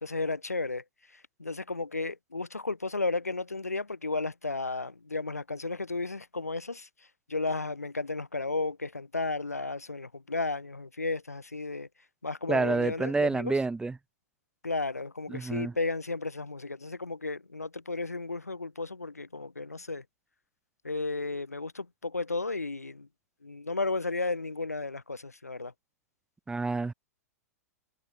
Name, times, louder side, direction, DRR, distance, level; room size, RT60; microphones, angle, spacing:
voice 1, 0.0-0.8 1.1-6.9 7.3-11.9 12.2-13.6 14.6-20.0 20.8-23.1 23.4-25.7, left 3 dB, 85° left, 3.8 m, -33 dB
voice 2, 12.5-14.0 15.3-15.7 26.5-26.9, right 3 dB, 10° right, 3.6 m, -28 dB
figure-of-eight pair, 100°, 8 cm